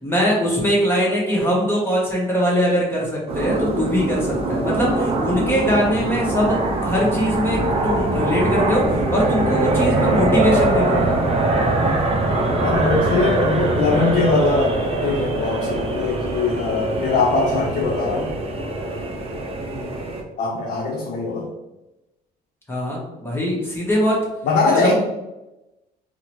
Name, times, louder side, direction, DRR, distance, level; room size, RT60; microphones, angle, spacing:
voice 1, 0.0-11.2 19.6-19.9 22.7-24.2 24.7-24.9, equal, 15° left, -4 dB, 0.8 m, -22 dB
sound 1, 3.3-20.2, right 2 dB, 35° right, 0.6 m, -22 dB
voice 2, 12.6-18.3 20.4-21.5 24.4-24.9, left 3 dB, 55° left, -1 dB, 0.6 m, -21 dB
3.7 x 2.0 x 2.9 m, 0.99 s
cardioid pair, 110°, 17 cm